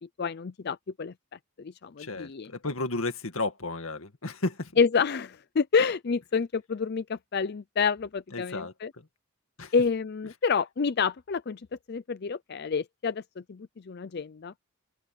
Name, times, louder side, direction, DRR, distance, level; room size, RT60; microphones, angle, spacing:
voice 1, 0.2-1.1 1.6-2.5 4.8-8.9 9.7-11.6 11.9-14.5, left 5 dB, 50° left, 0.5 m, -28 dB
voice 2, 2.0-4.7 8.3-9.1 9.6-9.7, left 2 dB, 85° left, 1.9 m, -33 dB
open air
head